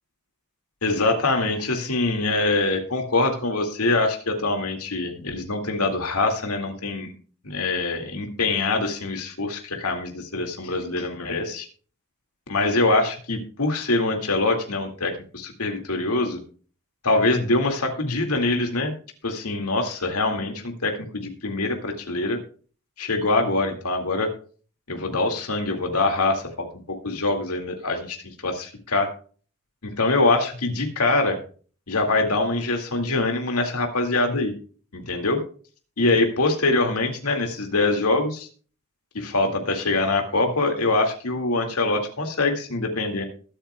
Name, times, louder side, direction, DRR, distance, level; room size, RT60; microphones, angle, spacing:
voice 1, 0.8-7.1 7.4-11.7 12.5-16.4 17.0-18.9 19.2-22.4 23.0-24.3 24.9-29.1 29.8-31.4 31.9-34.5 34.9-35.4 36.0-38.5 39.1-43.2, left 2 dB, 85° left, 4 dB, 2.2 m, -24 dB
21.5 x 8.7 x 2.3 m, 0.40 s
head